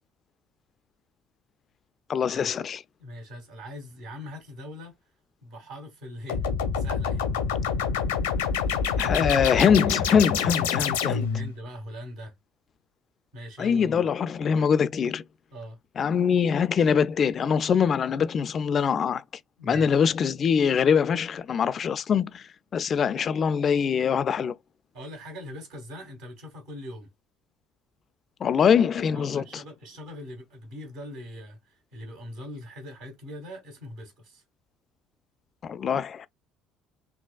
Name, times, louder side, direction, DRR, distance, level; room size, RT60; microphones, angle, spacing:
voice 1, 2.1-2.8 9.0-11.3 13.6-15.2 16.0-19.2 19.6-22.4 22.7-24.5 28.4-29.6 35.6-36.3, left 7 dB, 45° left, 0.4 m, -23 dB
voice 2, 3.0-4.9 5.4-6.4 6.7-7.2 8.6-10.0 11.0-12.3 13.3-14.0 15.5-15.8 19.6-19.9 24.9-27.1 29.1-34.4, left 1 dB, 70° right, 2.1 m, -41 dB
sound 1, 6.3-11.5, left 6 dB, 80° left, 0.7 m, -26 dB
3.9 x 2.8 x 2.3 m
hypercardioid pair, 60°, 0 cm